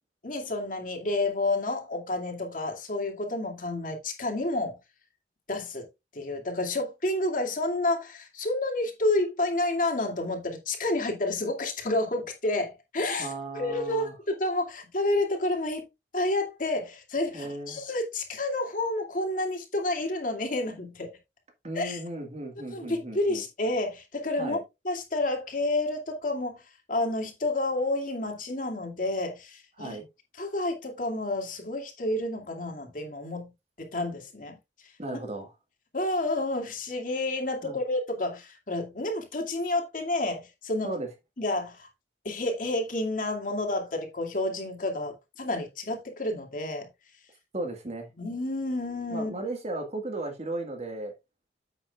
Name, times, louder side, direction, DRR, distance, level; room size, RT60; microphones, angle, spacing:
voice 1, 0.2-4.8 5.5-5.9 6.1-13.3 13.5-15.8 16.1-21.1 21.7-22.0 22.7-24.6 24.8-26.6 26.9-30.0 30.4-33.5 33.8-34.6 35.9-40.9 41.4-41.9 42.2-46.9 48.2-49.3, left 2 dB, 45° left, 2.5 m, -30 dB
voice 2, 13.2-14.2 17.3-17.8 21.6-23.4 24.4-24.6 29.8-30.1 35.0-35.5 37.6-37.8 40.8-41.1 47.5-48.1 49.1-51.1, right 2 dB, 35° right, 1.8 m, -35 dB
9.6 x 8.0 x 2.4 m
head